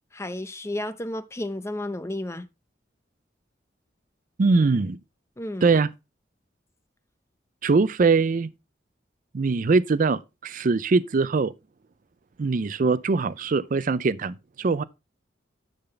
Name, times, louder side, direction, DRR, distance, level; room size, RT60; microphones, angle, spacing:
voice 1, 0.1-2.5 5.4-5.7, left 1 dB, 15° left, 0.7 m, -32 dB
voice 2, 4.4-5.0 5.6-5.9 7.6-8.5 9.3-11.5 12.4-14.8, right 4 dB, 45° right, 0.4 m, -22 dB
9.9 x 3.8 x 6.9 m
head